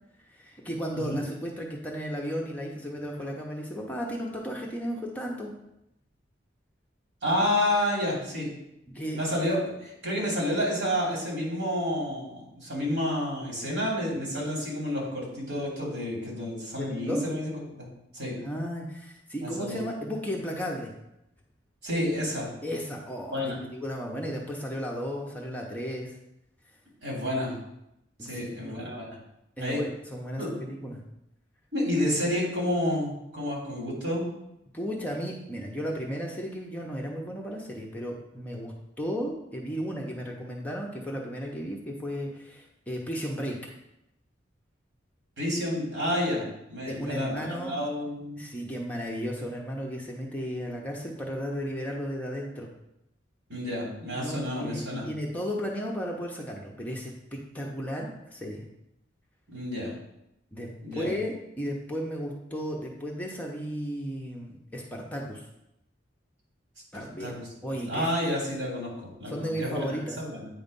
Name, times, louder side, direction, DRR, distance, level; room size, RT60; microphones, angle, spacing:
voice 1, 0.3-5.5 8.9-9.2 16.8-17.2 18.4-20.9 22.6-26.1 28.2-28.8 29.6-31.0 34.7-43.6 46.8-47.7 48.4-52.7 54.1-57.1 57.5-58.7 60.5-65.5 66.9-67.3 67.6-68.1 69.3-70.2, equal, 10° left, -1 dB, 0.7 m, -34 dB
voice 2, 7.2-8.5 9.1-17.9 18.1-18.4 19.4-19.8 21.8-22.5 23.3-23.6 27.0-27.5 28.2-29.1 29.6-29.8 30.4-30.5 31.7-34.3 45.4-46.4 46.7-48.4 53.5-55.0 59.5-59.9 60.8-61.1 67.2-67.5 67.9-70.5, left 1 dB, 70° right, -4 dB, 2.8 m, -30 dB
8.8 x 3.2 x 5.3 m, 0.84 s
head